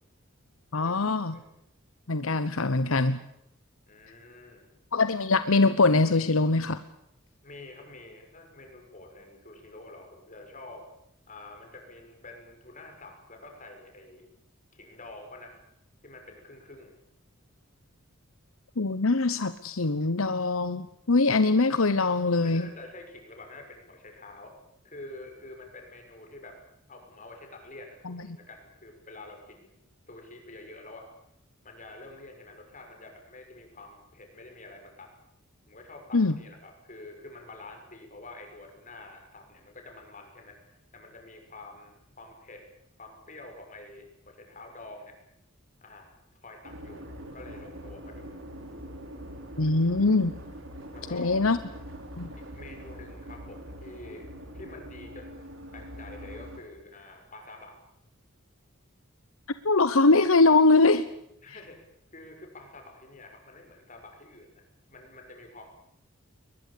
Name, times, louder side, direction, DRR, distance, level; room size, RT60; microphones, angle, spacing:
voice 1, 0.7-1.4 2.1-3.2 4.9-6.8 18.8-22.7 28.0-28.2 36.1-36.3 49.6-50.4 51.1-51.6 52.2-52.3 59.6-61.1, left 3 dB, 80° left, 13 dB, 1.0 m, -22 dB
voice 2, 3.9-4.7 7.4-10.8 11.3-14.3 14.7-15.5 16.0-17.0 22.4-24.5 24.8-26.6 26.9-29.8 30.1-31.1 31.6-35.1 35.7-42.6 43.0-45.2 45.8-46.1 46.4-48.4 50.9-51.4 52.5-54.3 54.5-57.8 61.4-61.8 62.1-65.7, left 2 dB, 40° left, 3 dB, 6.5 m, -47 dB
sound 1, 46.6-56.6, equal, 65° right, 4.7 m, -43 dB
22.0 x 21.0 x 8.6 m, 0.76 s
head